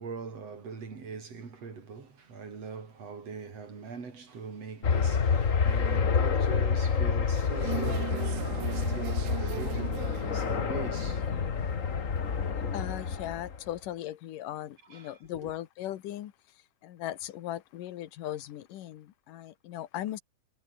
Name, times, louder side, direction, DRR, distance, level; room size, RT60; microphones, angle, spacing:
voice 1, 0.0-11.4 11.9-12.0 12.6-12.8 14.9-15.5, right 5 dB, 50° right, 5.2 m, -42 dB
sound 1, 4.8-13.6, left 6 dB, 40° left, 1.1 m, -28 dB
sound 2, 7.6-10.6 13.1-13.2, right 17 dB, 75° right, 2.1 m, -37 dB
voice 2, 12.7-16.3 16.8-20.2, left 13 dB, 90° left, 2.9 m, -38 dB
omnidirectional pair, 3.7 m